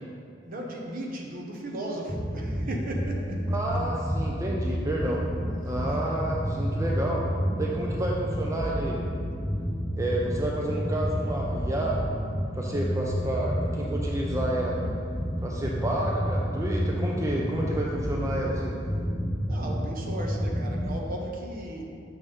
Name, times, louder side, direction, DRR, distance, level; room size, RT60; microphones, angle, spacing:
voice 1, 0.4-3.8 5.9-6.0 19.4-21.9, right 1 dB, 50° right, 0 dB, 0.8 m, -36 dB
sound 1, 2.1-20.9, equal, 25° left, 1.1 m, -30 dB
voice 2, 3.5-5.2 5.6-7.3 7.6-9.0 10.0-12.0 12.5-14.8 15.4-18.8, right 1 dB, 15° right, -3 dB, 0.5 m, -30 dB
6.2 x 3.6 x 5.3 m, 2.4 s
head